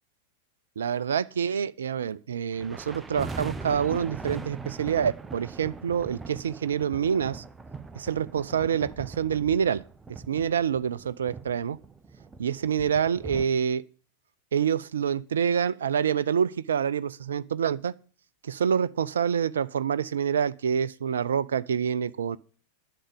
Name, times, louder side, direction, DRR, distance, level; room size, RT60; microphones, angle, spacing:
voice 1, 0.8-7.4 8.0-9.8 10.3-11.8 12.4-13.8 14.5-17.9 18.4-22.4, right 7 dB, 65° right, 0.4 m, -27 dB
sound 1, 2.5-13.4, right 4 dB, 15° right, 0.7 m, -40 dB
10.0 x 6.8 x 7.8 m
figure-of-eight pair, 90°, 0 cm